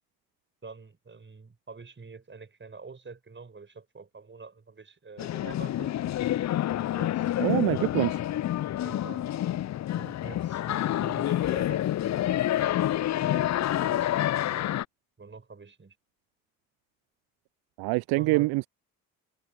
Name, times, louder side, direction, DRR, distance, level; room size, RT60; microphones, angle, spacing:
voice 1, 0.6-5.9 6.8-7.9 8.8-9.3 9.9-12.4 13.1-14.7 15.2-16.0 18.1-18.5, right 4 dB, 25° right, 5.8 m, -46 dB
sound 1, 5.2-14.8, left 13 dB, 40° left, 0.8 m, -28 dB
voice 2, 7.4-8.2 17.8-18.7, right 24 dB, 55° right, 0.8 m, -25 dB
figure-of-eight pair, 45°, 44 cm